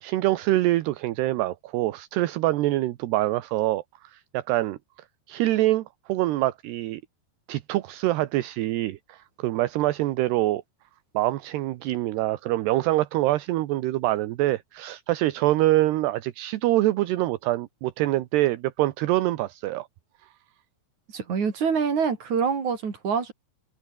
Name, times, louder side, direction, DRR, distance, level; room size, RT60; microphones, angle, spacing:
voice 1, 0.0-4.8 5.3-7.0 7.5-10.6 11.1-19.9, right 16 dB, 75° right, 3.0 m, -25 dB
voice 2, 21.1-23.3, right 6 dB, 45° right, 5.2 m, -25 dB
omnidirectional pair, 5.1 m